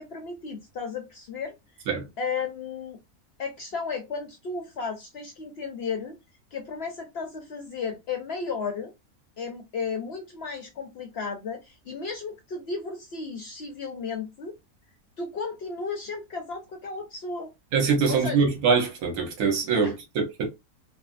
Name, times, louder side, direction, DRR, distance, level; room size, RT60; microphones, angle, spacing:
voice 1, 0.0-1.5 2.2-3.0 3.4-6.2 6.5-8.9 9.4-14.5 15.2-17.5 18.1-18.4 19.8-19.9, left 5 dB, 60° left, 0.7 m, -34 dB
voice 2, 17.7-20.5, right 5 dB, 85° right, 1.4 m, -23 dB
3.4 x 2.2 x 2.4 m
omnidirectional pair, 1.6 m